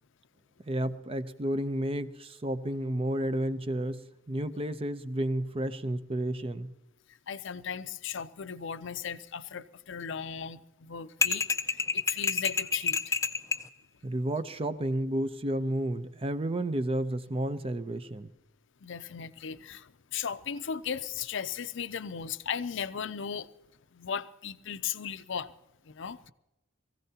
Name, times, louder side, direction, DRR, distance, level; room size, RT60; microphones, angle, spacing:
voice 1, 0.7-6.7 14.0-18.3, right 1 dB, 25° right, 0.6 m, -31 dB
voice 2, 7.3-11.5 11.9-13.2 18.8-23.5 23.9-25.5 25.8-26.3, left 7 dB, 60° left, 0.6 m, -36 dB
sound 1, 11.2-13.7, left 5 dB, 15° left, 0.4 m, -28 dB
22.5 x 15.5 x 2.9 m
head